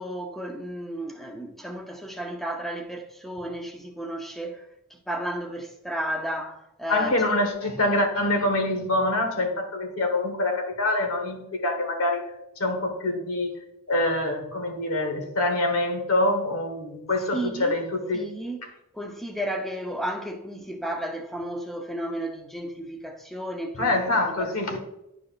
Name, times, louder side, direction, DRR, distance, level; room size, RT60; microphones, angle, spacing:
voice 1, 0.0-4.6 4.9-7.2 17.3-17.8 18.1-24.0 24.4-24.8, right 1 dB, ahead, 0.7 m, -33 dB
voice 2, 6.9-13.5 13.9-18.3 23.7-24.8, left 2 dB, 75° left, 1.5 m, -25 dB
10.5 x 4.8 x 2.5 m
head